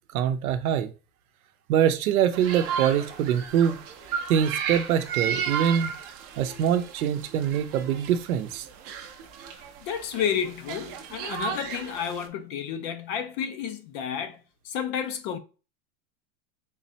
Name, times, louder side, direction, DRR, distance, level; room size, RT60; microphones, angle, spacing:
voice 1, 0.1-0.9 1.7-3.8 4.3-5.9 6.4-8.7, right 9 dB, 90° right, 0.7 m, -24 dB
sound 1, 2.3-12.3, right 7 dB, 35° right, 0.6 m, -34 dB
voice 2, 9.8-15.4, left 8 dB, 35° left, 0.4 m, -31 dB
3.8 x 3.1 x 2.7 m
supercardioid pair, 140°, 42 cm